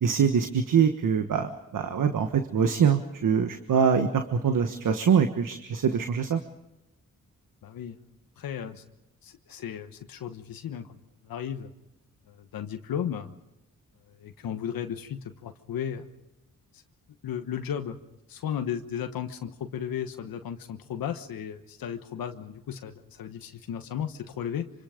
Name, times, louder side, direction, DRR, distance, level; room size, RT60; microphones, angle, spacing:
voice 1, 0.0-6.4, right 7 dB, 65° right, 7 dB, 1.4 m, -24 dB
voice 2, 7.6-8.0 8.4-8.8 9.2-11.0 11.2-11.7 12.3-13.3 14.1-16.1 17.2-18.0 18.3-24.6, left 9 dB, 85° left, 7 dB, 1.3 m, -35 dB
25.5 x 25.5 x 5.1 m, 0.91 s
cardioid pair, 75°, 34 cm